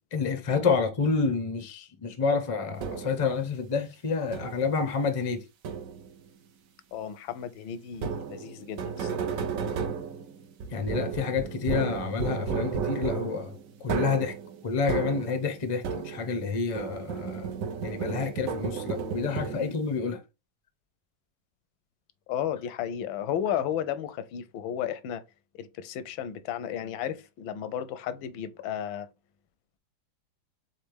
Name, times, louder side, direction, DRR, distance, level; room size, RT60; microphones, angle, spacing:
voice 1, 0.1-5.4 10.7-13.5 13.8-14.3 14.6-17.5 17.8-20.2, left 5 dB, 65° left, 0.3 m, -29 dB
sound 1, 2.8-3.3 4.3-4.8 5.6-6.2 7.9-16.5 16.7-19.9, right 6 dB, 65° right, 0.8 m, -33 dB
voice 2, 6.9-9.3 19.6-19.8 22.3-25.2 25.5-29.1, left 9 dB, 90° left, 1.4 m, -33 dB
4.2 x 3.7 x 3.3 m
omnidirectional pair, 2.1 m